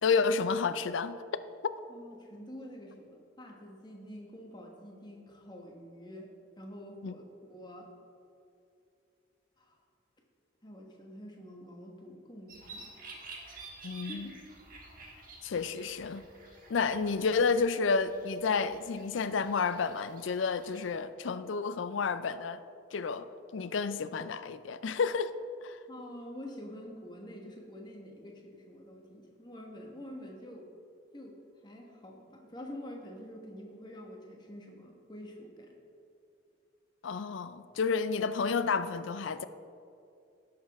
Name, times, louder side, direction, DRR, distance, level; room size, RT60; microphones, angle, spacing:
voice 1, 0.0-1.7 7.0-7.1 13.8-14.3 15.4-16.2 16.7-22.6 22.9-23.3 23.5-25.3 25.6-25.8 37.0-39.4, left 5 dB, 85° left, 13 dB, 0.4 m, -30 dB
voice 2, 1.9-6.3 6.6-7.2 7.5-7.9 9.6-9.8 10.6-12.9 14.1-14.4 25.9-30.7 31.1-35.8, equal, 20° left, 0 dB, 1.2 m, -47 dB
sound 1, 12.5-21.0, right 3 dB, 45° right, 1.4 m, -51 dB
17.0 x 6.7 x 3.5 m, 2.6 s
head